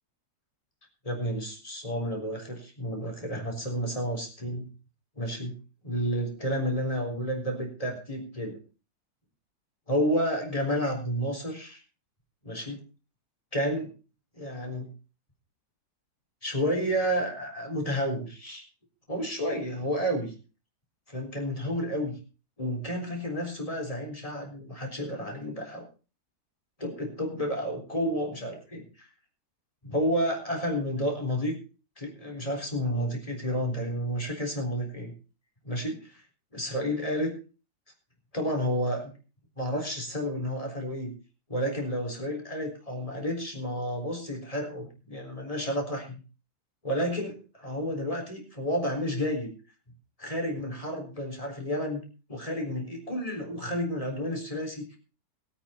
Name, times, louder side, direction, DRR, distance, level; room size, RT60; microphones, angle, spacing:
voice 1, 1.0-4.7 5.2-5.6 5.8-8.6 9.9-11.8 12.4-12.8 13.5-13.9 14.3-14.9 16.4-18.6 19.1-20.3 21.1-22.2 22.6-25.9 26.8-29.1 29.8-31.6 32.0-35.1 35.6-36.2 36.5-37.3 38.3-39.1 39.6-41.1 41.5-46.2 46.8-49.5 50.2-52.0 52.3-55.0, equal, 20° left, 1 dB, 3.9 m, -31 dB
21.0 x 8.8 x 4.3 m, 0.35 s
omnidirectional pair, 1.7 m